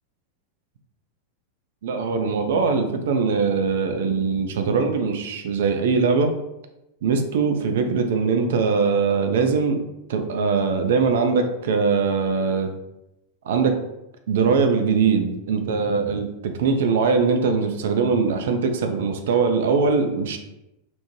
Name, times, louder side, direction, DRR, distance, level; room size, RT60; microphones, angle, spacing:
voice 1, 1.8-6.3 7.0-9.8 10.1-12.7 13.5-13.7 14.3-20.4, right 5 dB, 60° right, 5 dB, 0.4 m, -21 dB
2.9 x 2.1 x 2.9 m, 0.91 s
figure-of-eight pair, 90°, 0 cm